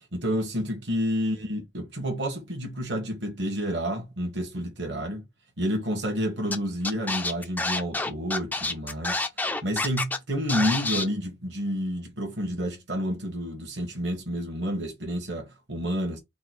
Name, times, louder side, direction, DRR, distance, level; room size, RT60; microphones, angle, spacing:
voice 1, 0.1-5.2 5.6-16.2, equal, 70° right, 1.3 m, -30 dB
Scratching (performance technique), 6.5-6.6 6.8-10.2 10.5-11.0, left 2 dB, 10° left, 0.5 m, -28 dB
3.9 x 2.3 x 4.2 m
head